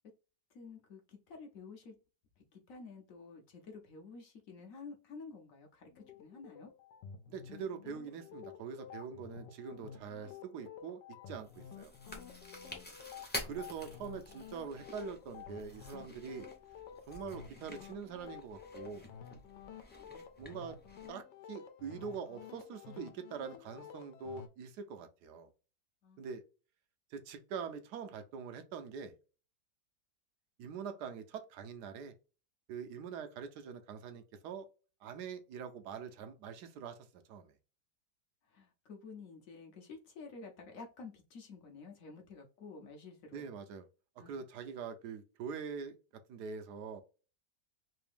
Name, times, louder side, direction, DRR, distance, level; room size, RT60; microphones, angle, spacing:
voice 1, 0.5-1.9 2.5-6.7 12.0-13.0 26.0-26.2 38.5-43.5 44.2-44.4, left 4 dB, 60° left, 1.0 m, -51 dB
sound 1, 5.9-24.5, left 8 dB, 85° left, 1.3 m, -51 dB
voice 2, 7.3-11.0 11.3-11.9 13.4-16.5 17.1-19.0 20.1-20.8 21.1-21.2 21.5-25.5 26.2-26.4 27.1-29.1 30.6-32.1 32.7-34.7 35.0-37.5 43.3-43.9 44.3-46.0 46.3-47.0, right 6 dB, 75° right, 1.1 m, -44 dB
Chewing mastication, 11.3-21.1, left 1 dB, 10° left, 0.4 m, -49 dB
3.4 x 2.7 x 3.4 m
omnidirectional pair, 1.9 m